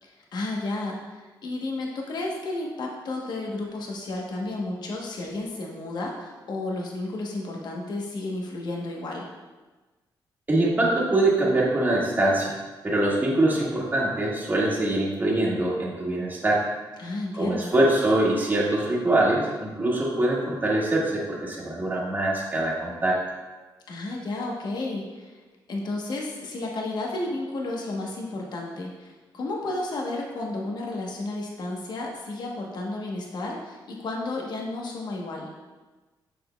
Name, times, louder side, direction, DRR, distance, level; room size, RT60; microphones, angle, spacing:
voice 1, 0.0-9.3 17.0-17.7 23.9-25.4 25.7-35.5, left 2 dB, 60° left, -1 dB, 1.0 m, -32 dB
voice 2, 10.5-12.6 12.8-16.6 17.3-23.2, right 1 dB, 20° right, -5 dB, 1.5 m, -23 dB
6.7 x 6.5 x 2.2 m, 1.2 s
cardioid pair, 110°, 8 cm